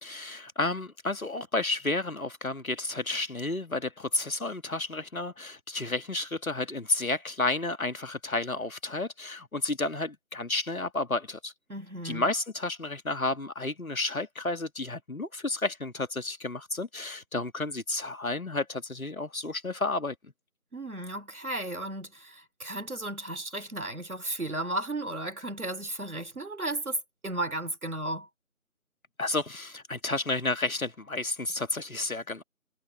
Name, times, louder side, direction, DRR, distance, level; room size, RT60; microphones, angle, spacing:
voice 1, 0.0-11.5 12.0-20.3 29.2-32.4, left 2 dB, 70° left, 1.8 m, -31 dB
voice 2, 11.7-12.3 20.7-28.3, right 1 dB, 75° right, 3.4 m, -34 dB
figure-of-eight pair, 170°, 43 cm